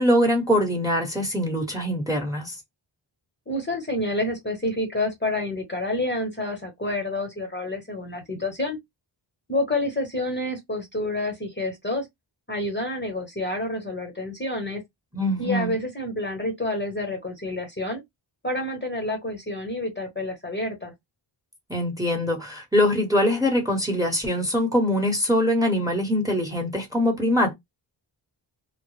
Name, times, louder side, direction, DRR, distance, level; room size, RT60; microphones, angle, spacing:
voice 1, 0.0-2.6 15.1-15.7 21.7-27.5, left 1 dB, 5° right, 1.0 m, -23 dB
voice 2, 3.5-8.8 9.5-12.1 12.5-14.8 15.4-18.0 18.4-20.9, left 1 dB, 20° left, 0.9 m, -28 dB
2.1 x 2.0 x 3.0 m
cardioid pair, 60°, 48 cm